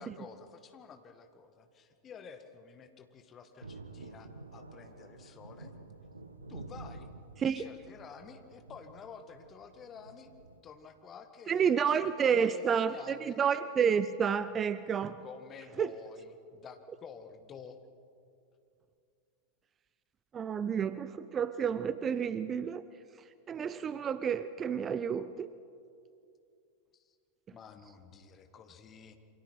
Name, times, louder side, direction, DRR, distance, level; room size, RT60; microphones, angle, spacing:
voice 1, 0.0-5.7 6.5-7.1 7.4-10.3 10.6-13.4 15.2-17.8 26.9-27.1 27.5-29.2, left 6 dB, 25° left, 7 dB, 1.8 m, -50 dB
Thunder, 3.6-10.6, right 3 dB, 80° right, 1.3 m, -50 dB
voice 2, 11.5-15.2 15.8-15.9 20.3-22.8 23.5-25.5, right 7 dB, 25° right, 14 dB, 0.6 m, -30 dB
28.5 x 25.0 x 4.6 m, 2.5 s
figure-of-eight pair, 90°, 0 cm